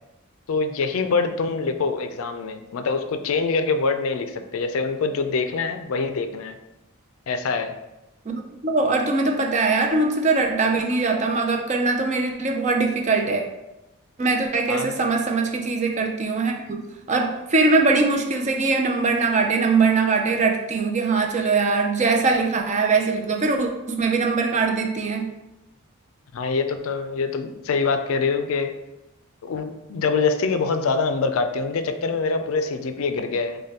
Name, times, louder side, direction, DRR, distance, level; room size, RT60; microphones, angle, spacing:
voice 1, 0.5-6.5 7.3-7.7 14.7-15.0 26.3-28.7 29.4-33.6, left 4 dB, 70° left, 8 dB, 0.4 m, -24 dB
voice 2, 8.3-13.4 14.2-25.3, right 3 dB, 30° right, 3 dB, 0.4 m, -22 dB
6.3 x 2.2 x 2.8 m, 0.94 s
head